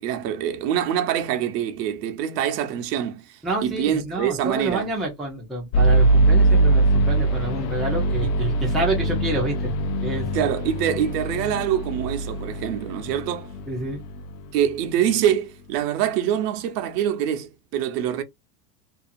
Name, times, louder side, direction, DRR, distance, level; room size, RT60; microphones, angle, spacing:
voice 1, 0.0-4.9 8.2-8.3 10.3-13.5 14.5-18.2, right 10 dB, 75° right, 0.8 m, -25 dB
voice 2, 3.4-9.7 10.0-10.3 13.7-14.0, right 1 dB, ahead, 0.5 m, -28 dB
sound 1, 5.7-14.3, right 2 dB, 55° left, 0.5 m, -22 dB
2.7 x 2.4 x 2.5 m
supercardioid pair, 150°, 49 cm